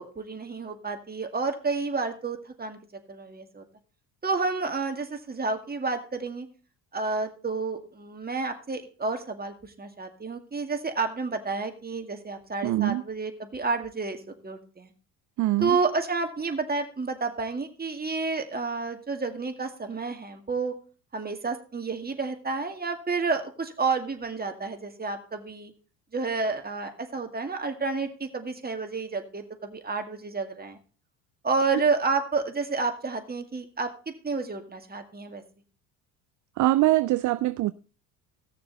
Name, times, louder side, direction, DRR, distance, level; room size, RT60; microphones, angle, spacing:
voice 1, 0.0-2.8 3.1-3.6 4.2-6.5 6.9-14.9 15.6-20.8 21.1-25.7 26.1-30.8 31.4-33.9 34.2-35.4, right 4 dB, 20° right, 2.1 m, -30 dB
voice 2, 12.6-13.0 15.4-15.8 36.6-37.7, right 16 dB, 40° right, 0.5 m, -23 dB
17.0 x 6.7 x 4.0 m
hypercardioid pair, 70°, 48 cm